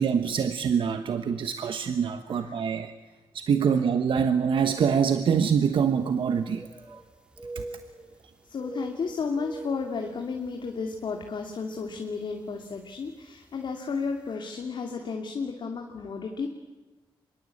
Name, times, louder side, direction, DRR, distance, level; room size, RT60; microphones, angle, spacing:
voice 1, 0.0-2.9 3.3-6.6 6.9-7.0 7.5-7.6, right 7 dB, 65° right, 8 dB, 1.3 m, -25 dB
sound 1, 5.4-5.5 5.8-7.1 7.3-8.3 8.5-10.7 11.1-11.3 11.9-12.2 13.2-13.3 13.7-13.8, right 3 dB, 10° right, 2.3 m, -43 dB
voice 2, 8.5-16.5, left 5 dB, 60° left, 3 dB, 2.7 m, -33 dB
25.0 x 22.5 x 8.6 m, 1.2 s
cardioid pair, 80°, 9 cm